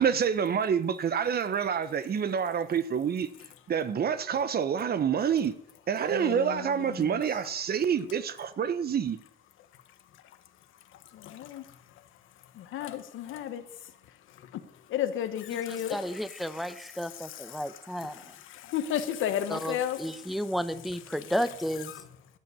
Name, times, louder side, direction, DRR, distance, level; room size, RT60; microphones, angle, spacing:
voice 1, 0.0-3.3 3.7-5.5 5.9-9.2, right 7 dB, 50° right, 1.0 m, -27 dB
voice 2, 6.1-7.2 10.9-11.8 12.5-13.6 14.3-14.6 14.9-16.2 16.5-16.7 16.9-20.4 21.9-22.0, left 10 dB, 85° left, 1.4 m, -34 dB
voice 3, 15.7-18.3 19.5-21.9, equal, ahead, 1.0 m, -33 dB
14.5 x 7.9 x 8.5 m
cardioid pair, 90°, 20 cm